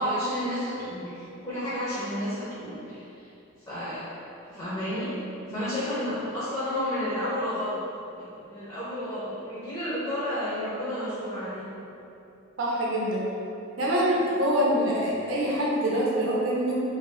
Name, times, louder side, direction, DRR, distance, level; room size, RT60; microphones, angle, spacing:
voice 1, 0.0-3.3 3.7-4.0 4.5-5.1 5.5-7.8 8.2-11.7, equal, 20° left, -11 dB, 0.7 m, -31 dB
voice 2, 12.6-13.2 13.8-16.8, equal, 75° right, -5 dB, 0.7 m, -25 dB
2.7 x 2.2 x 3.4 m, 2.8 s
head